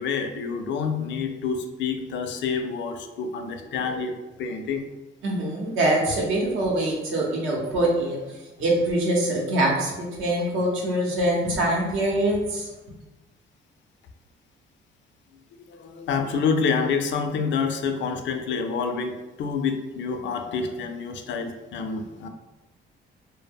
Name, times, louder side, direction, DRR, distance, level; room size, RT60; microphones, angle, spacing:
voice 1, 0.0-4.1 4.4-4.8 15.7-22.3, left 5 dB, 65° left, 6 dB, 0.4 m, -27 dB
voice 2, 5.2-8.2 8.6-12.7, right 1 dB, 80° right, -1 dB, 0.7 m, -24 dB
2.1 x 2.1 x 3.4 m, 1.1 s
cardioid pair, 90°, 20 cm